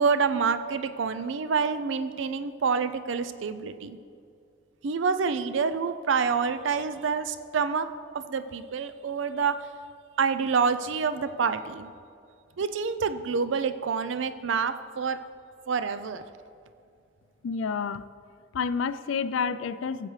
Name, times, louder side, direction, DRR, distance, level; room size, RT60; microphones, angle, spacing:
voice 1, 0.0-4.0 4.8-7.9 8.1-9.6 10.2-11.9 12.6-15.2 15.7-16.2, right 5 dB, 75° right, 11 dB, 0.4 m, -27 dB
voice 2, 17.4-18.0 18.5-20.1, left 5 dB, 90° left, 14 dB, 0.4 m, -29 dB
15.0 x 7.6 x 3.2 m, 2.5 s
head